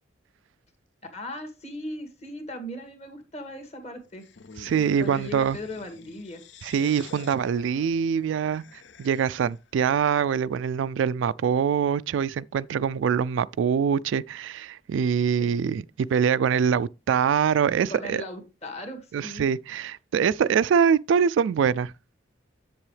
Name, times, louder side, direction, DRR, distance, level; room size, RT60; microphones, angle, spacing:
voice 1, 1.1-4.3 5.0-6.4 15.4-15.5 17.9-19.5, left 1 dB, 35° left, 1.9 m, -38 dB
sound 1, 4.2-9.7, left 5 dB, 65° left, 0.6 m, -47 dB
voice 2, 4.6-5.6 6.6-18.2 19.1-21.9, right 7 dB, 75° right, 0.3 m, -24 dB
7.7 x 7.4 x 3.3 m
head